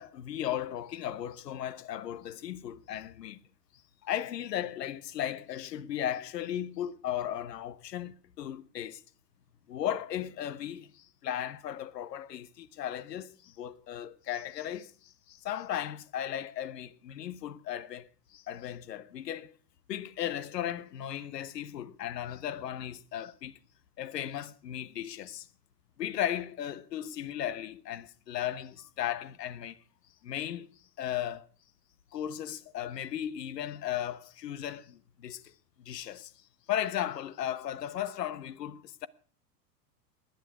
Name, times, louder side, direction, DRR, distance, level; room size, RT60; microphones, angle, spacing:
voice 1, 0.0-3.4 4.0-9.0 9.7-19.5 19.9-23.6 24.0-25.5 26.0-29.8 30.2-30.7 31.0-31.5 32.1-35.5 35.8-36.3 36.7-39.1, left 11 dB, 80° left, 1.2 m, -36 dB
19.5 x 10.5 x 4.9 m
hypercardioid pair, 95°, 49 cm